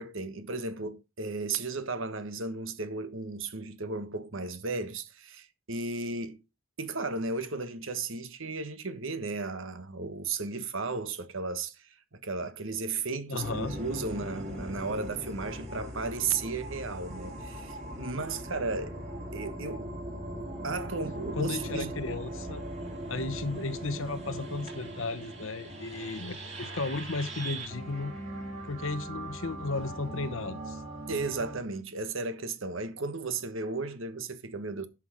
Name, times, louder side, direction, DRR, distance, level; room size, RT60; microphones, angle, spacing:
voice 1, 0.0-6.4 6.8-19.0 19.3-19.9 20.6-21.9 31.1-34.9, right 3 dB, 65° right, 1.3 m, -34 dB
voice 2, 13.3-13.7 21.4-22.7 23.1-28.1 28.6-30.8, left 3 dB, 65° left, 1.1 m, -34 dB
sound 1, 13.4-31.6, right 1 dB, 30° right, 3.5 m, -40 dB
11.0 x 6.0 x 4.9 m
head